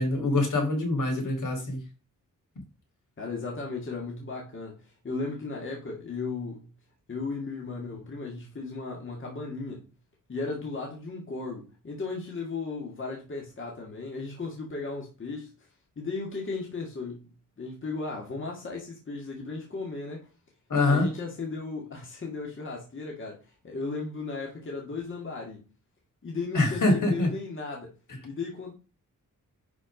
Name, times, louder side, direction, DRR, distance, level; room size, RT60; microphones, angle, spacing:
voice 1, 0.0-1.8 20.7-21.1 26.5-27.3, left 2 dB, 65° left, 4.6 m, -24 dB
voice 2, 3.2-6.7 7.1-9.8 10.3-15.7 16.0-17.3 17.6-20.3 20.8-25.6 26.2-27.9 28.2-28.7, left 3 dB, 40° left, 2.2 m, -35 dB
11.0 x 4.7 x 5.2 m
wide cardioid pair, 170°, 33 cm